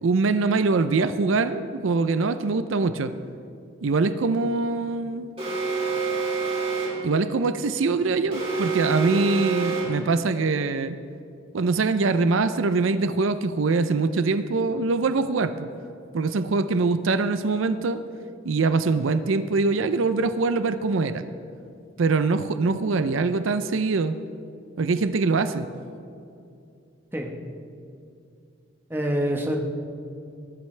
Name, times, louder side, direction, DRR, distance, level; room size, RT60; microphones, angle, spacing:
voice 1, 0.0-3.1 3.8-5.3 7.0-11.0 11.5-15.7 16.1-18.0 18.4-21.2 22.0-24.2 24.8-25.7, right 3 dB, 80° right, 11 dB, 0.5 m, -23 dB
Alarm, 5.4-7.1 8.3-10.1, right 4 dB, 30° right, 3.2 m, -27 dB
voice 2, 28.9-29.6, equal, 10° right, 1 dB, 1.1 m, -25 dB
20.5 x 11.5 x 3.3 m, 2.5 s
head